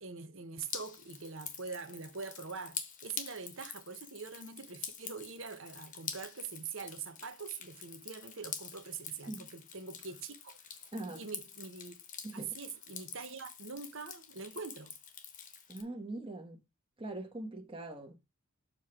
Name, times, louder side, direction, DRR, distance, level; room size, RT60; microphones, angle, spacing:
voice 1, 0.0-10.8 11.1-11.9 12.3-14.9, right 5 dB, 60° right, 1.1 m, -44 dB
Drip, 0.6-15.8, left 7 dB, 35° left, 1.0 m, -46 dB
voice 2, 10.9-11.2 12.2-12.6 15.7-16.6 17.0-18.1, right 2 dB, 25° right, 1.5 m, -42 dB
7.0 x 3.3 x 5.9 m
head